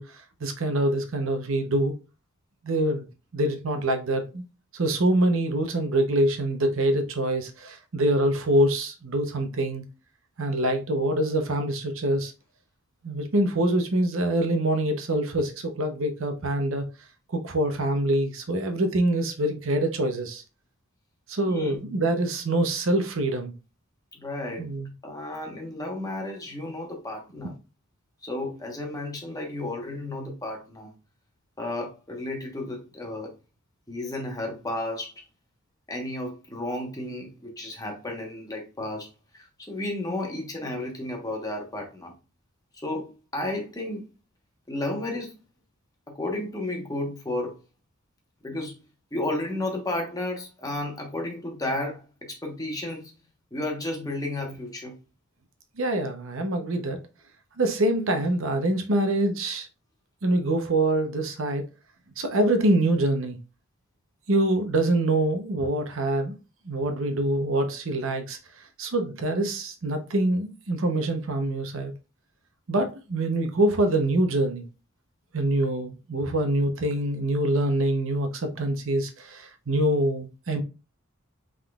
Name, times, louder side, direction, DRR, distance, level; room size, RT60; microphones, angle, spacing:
voice 1, 0.0-1.9 2.6-3.1 3.3-4.4 4.7-9.8 10.4-12.3 13.0-16.9 17.3-20.4 21.3-23.5 24.6-24.9 55.8-57.0 57.6-59.7 60.2-61.7 62.2-63.4 64.3-66.4 66.6-71.9 72.7-74.7 75.3-80.6, right 1 dB, 60° right, 0.7 m, -25 dB
voice 2, 21.4-22.0 24.1-24.7 25.0-27.6 28.2-30.9 31.6-33.3 33.9-35.1 35.9-42.1 42.8-44.1 44.7-45.3 46.1-47.6 48.4-48.8 49.1-53.2 53.5-55.0 56.0-56.1 60.8-61.0, left 1 dB, 15° left, 1.1 m, -33 dB
5.5 x 3.7 x 2.3 m
head